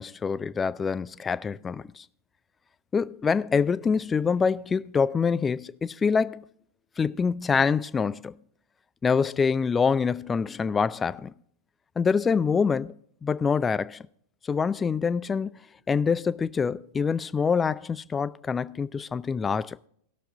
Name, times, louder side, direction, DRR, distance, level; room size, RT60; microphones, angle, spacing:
voice 1, 0.0-2.0 2.9-6.4 7.0-8.3 9.0-11.3 12.0-12.9 13.2-14.0 14.5-15.5 15.9-19.8, left 5 dB, 15° left, 0.4 m, -25 dB
17.5 x 6.8 x 3.8 m
figure-of-eight pair, 90°, 0 cm